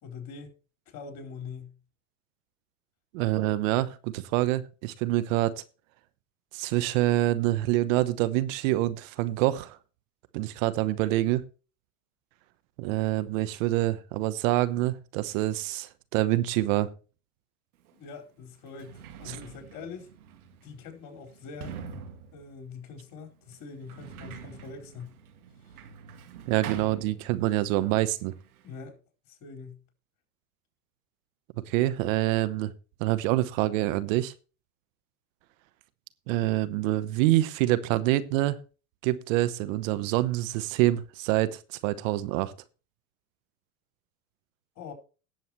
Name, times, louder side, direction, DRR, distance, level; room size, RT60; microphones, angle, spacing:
voice 1, 0.0-0.5 0.9-1.8 17.9-20.1 20.6-21.8 22.3-25.2 28.6-29.0 29.3-29.8 44.8-44.9, left 5 dB, 50° left, 4.7 m, -43 dB
voice 2, 3.1-5.6 6.5-9.8 10.3-11.4 12.8-16.9 19.3-19.4 26.5-28.3 31.7-32.7 33.0-34.3 36.3-38.6 39.0-42.5, right 16 dB, 60° right, 1.0 m, -26 dB
Sliding door, 17.8-17.9 18.6-27.7 28.0-28.8, right 8 dB, 80° right, 2.0 m, -45 dB
18.0 x 7.6 x 3.1 m
hypercardioid pair, 95°, 43 cm